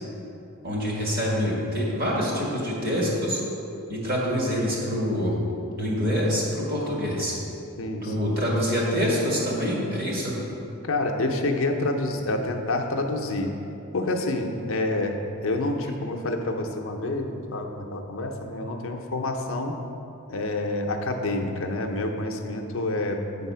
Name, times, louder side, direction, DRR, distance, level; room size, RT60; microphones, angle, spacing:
voice 1, 0.6-3.4 3.9-5.4 5.7-7.4 8.0-10.3, equal, 45° right, -4 dB, 1.7 m, -26 dB
voice 2, 7.8-8.3 10.8-13.5 13.9-19.8 20.3-23.5, left 2 dB, 65° left, 3 dB, 0.6 m, -28 dB
8.2 x 4.0 x 5.5 m, 2.9 s
head